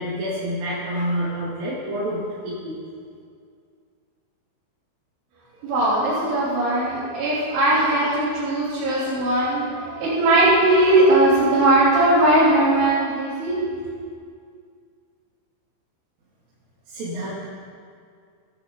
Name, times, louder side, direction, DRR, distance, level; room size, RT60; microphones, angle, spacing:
voice 1, 0.0-2.8 16.9-17.5, equal, 55° right, -8 dB, 3.7 m, -28 dB
voice 2, 5.6-13.6, right 1 dB, 80° right, -10 dB, 5.8 m, -19 dB
26.0 x 10.5 x 4.0 m, 2.2 s
omnidirectional pair, 5.5 m